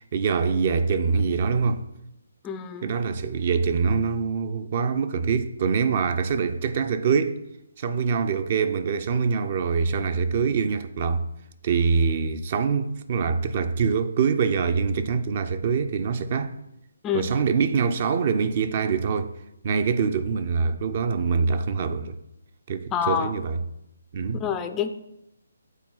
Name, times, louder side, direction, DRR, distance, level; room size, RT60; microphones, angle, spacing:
voice 1, 0.0-1.8 2.8-7.4 7.8-11.3 11.6-16.5 17.1-19.3 19.6-22.2 22.7-23.6 24.1-24.4, right 5 dB, 40° right, 0.5 m, -24 dB
voice 2, 2.4-2.9 17.0-17.4 22.9-23.3 24.3-24.9, left 8 dB, 15° left, 0.4 m, -27 dB
8.3 x 4.1 x 3.9 m
figure-of-eight pair, 140°, 0 cm